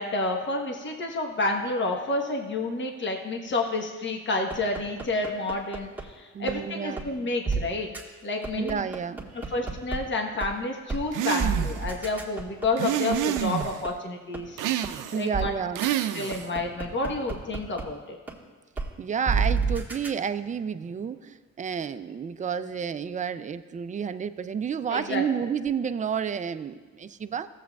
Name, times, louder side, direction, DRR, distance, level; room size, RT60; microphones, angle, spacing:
voice 1, 0.0-7.9 8.2-8.8 9.3-14.6 15.1-15.6 16.1-18.2 24.9-25.2, left 2 dB, 40° left, 2 dB, 1.2 m, -29 dB
sound 1, 4.5-6.0 6.5-6.6 7.0-7.1 7.5-7.6 7.9-8.0 8.4-10.0 10.4-10.5 10.9-11.0 11.4-13.9 14.3-14.4 14.8-14.9 15.3-15.5 15.8-15.9 16.3-17.8 18.3-18.4 18.8-18.9 19.3-20.1, right 5 dB, 5° right, 1.6 m, -28 dB
voice 2, 6.3-7.1 8.6-9.5 15.1-15.9 19.0-27.5, right 7 dB, 25° right, 11 dB, 0.4 m, -30 dB
sound 2, 11.1-11.9 12.8-13.8 14.6-15.3 15.8-16.5, right 11 dB, 85° right, 0.5 m, -28 dB
15.0 x 7.4 x 2.3 m, 1.4 s
cardioid pair, 90°, 30 cm